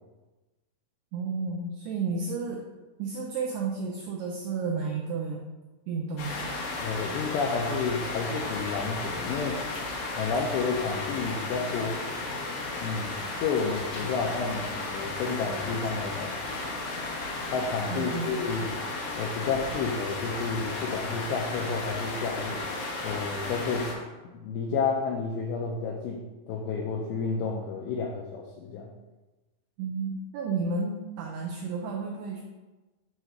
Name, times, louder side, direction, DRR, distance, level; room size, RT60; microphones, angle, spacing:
voice 1, 1.1-2.6 3.0-5.4 5.9-6.6 17.9-18.5 29.8-32.4, right 4 dB, 85° right, 0 dB, 2.3 m, -32 dB
sound 1, 6.2-23.9, left 2 dB, 65° left, 3.3 m, -34 dB
voice 2, 6.8-9.6 10.2-12.0 12.8-16.4 17.5-18.8 19.2-22.6 23.0-23.9 24.3-28.9, left 5 dB, 80° left, -1 dB, 2.5 m, -31 dB
7.9 x 2.9 x 5.8 m, 1.1 s
omnidirectional pair, 5.5 m